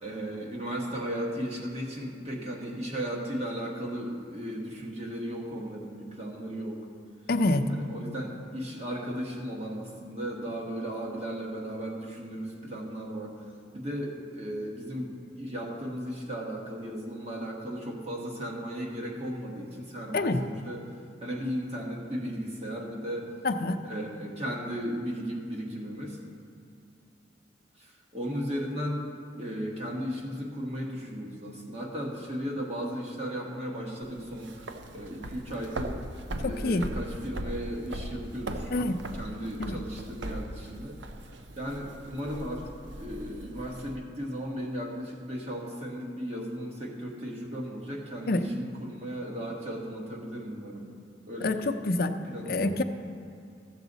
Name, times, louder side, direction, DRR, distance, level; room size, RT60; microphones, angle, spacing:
voice 1, 0.0-6.8 7.7-13.3 13.7-20.9 21.2-23.3 23.8-26.2 27.8-29.1 29.3-41.0 41.6-42.7 42.9-50.9 51.3-51.9 52.3-52.8, equal, 35° right, -2 dB, 1.6 m, -36 dB
voice 2, 7.3-7.6 20.1-20.4 23.4-23.8 36.4-36.9 38.7-39.0 39.6-39.8 48.3-48.5 51.4-52.1 52.5-52.8, left 2 dB, 55° left, 7 dB, 0.5 m, -26 dB
sound 1, 34.0-44.0, right 1 dB, 85° right, 0.6 m, -39 dB
14.5 x 7.2 x 4.0 m, 2.5 s
head